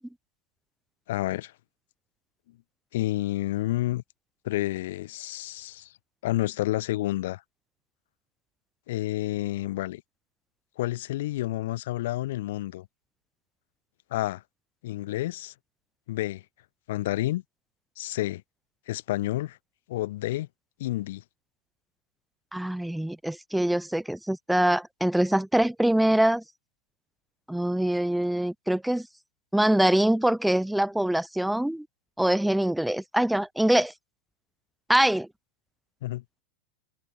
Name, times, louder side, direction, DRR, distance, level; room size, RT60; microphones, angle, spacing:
voice 1, 1.1-1.5 2.9-4.0 4.4-5.9 6.2-7.4 8.9-10.0 10.8-12.9 14.1-14.4 14.8-15.5 16.1-16.4 16.9-17.4 18.0-18.4 18.9-19.6 19.9-20.5 20.8-21.2 36.0-36.2, left 16 dB, 70° left, 0.6 m, -29 dB
voice 2, 22.5-26.4 27.5-29.1 29.5-31.9 32.2-33.9 34.9-35.3, right 1 dB, 5° right, 0.8 m, -24 dB
hypercardioid pair, 125°, 0 cm